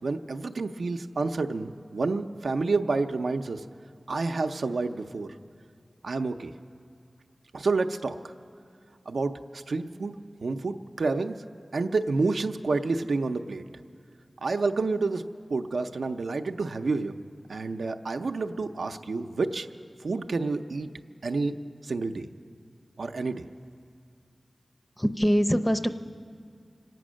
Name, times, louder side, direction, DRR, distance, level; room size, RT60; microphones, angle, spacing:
voice 1, 0.0-3.6 4.1-5.3 6.0-6.5 7.5-8.2 9.1-11.4 11.7-13.6 14.4-15.2 15.5-17.2 17.5-19.7 20.0-20.9 21.2-21.6 21.8-22.3 23.0-23.4, right 3 dB, 90° right, 6 dB, 0.5 m, -29 dB
voice 2, 25.0-25.9, equal, 10° left, 8 dB, 0.6 m, -23 dB
25.0 x 9.2 x 6.3 m, 2.3 s
wide cardioid pair, 60°, 0 cm